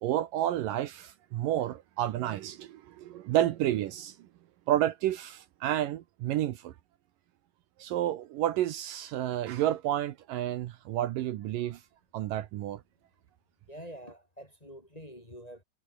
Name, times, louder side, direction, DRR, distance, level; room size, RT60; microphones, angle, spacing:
voice 1, 0.0-4.2 4.7-6.7 7.8-11.8 12.1-12.8, right 12 dB, 70° right, 2.5 m, -30 dB
voice 2, 13.7-15.6, equal, 10° left, 2.9 m, -46 dB
omnidirectional pair, 4.2 m